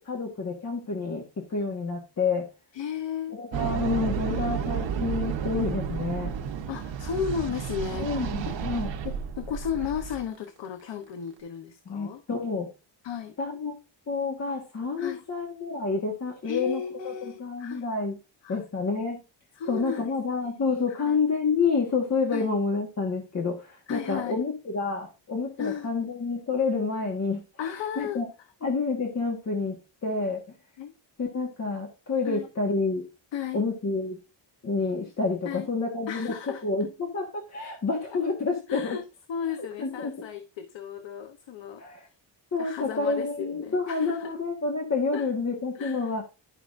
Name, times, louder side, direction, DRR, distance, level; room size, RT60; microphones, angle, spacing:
voice 1, 0.0-2.5 3.3-6.3 8.0-8.9 11.9-12.7 13.4-13.7 14.1-18.2 18.5-19.2 19.7-27.4 28.0-28.3 28.6-30.4 31.2-33.0 33.5-34.2 34.6-36.3 36.6-39.0 39.8-40.2 41.8-42.1 42.5-46.2, left 4 dB, 35° left, 1.6 m, -29 dB
voice 2, 2.7-3.4 4.3-4.4 6.7-8.5 9.0-12.2 13.0-13.3 15.0-15.2 16.4-17.8 18.4-18.6 19.6-20.1 20.4-21.2 22.3-22.5 23.9-24.4 25.6-25.9 27.6-28.2 30.8-30.9 32.2-32.5 33.3-33.6 35.4-35.7 36.1-36.6 38.7-39.0 39.3-41.8 42.6-44.3 45.1-45.3 45.7-46.1, left 8 dB, 75° left, 1.1 m, -34 dB
sound 1, 3.5-10.2, right 7 dB, 75° right, 1.2 m, -32 dB
12.0 x 5.8 x 2.6 m
wide cardioid pair, 150°, 44 cm